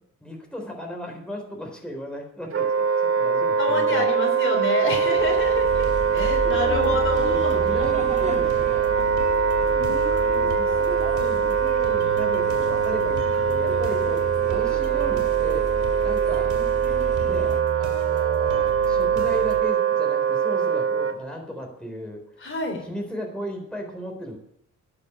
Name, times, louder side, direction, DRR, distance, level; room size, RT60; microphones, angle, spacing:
voice 1, 0.2-4.1 4.8-4.9 6.1-8.8 9.6-10.0 10.4-16.5 17.2-22.5 22.8-24.3, equal, 5° left, 0 dB, 4.0 m, -36 dB
Wind instrument woodwind instrument, 2.5-21.2, right 7 dB, 45° right, 1.6 m, -22 dB
voice 2, 3.6-5.9 6.1-7.6 9.8-10.5 11.1-11.4 22.4-22.9, left 2 dB, 40° left, 3 dB, 3.6 m, -28 dB
sound 1, 5.2-17.6, right 2 dB, 25° right, 1.6 m, -37 dB
sound 2, 5.6-19.6, right 6 dB, 80° right, 2.5 m, -34 dB
11.5 x 6.8 x 9.6 m, 0.74 s
cardioid pair, 90°, 30 cm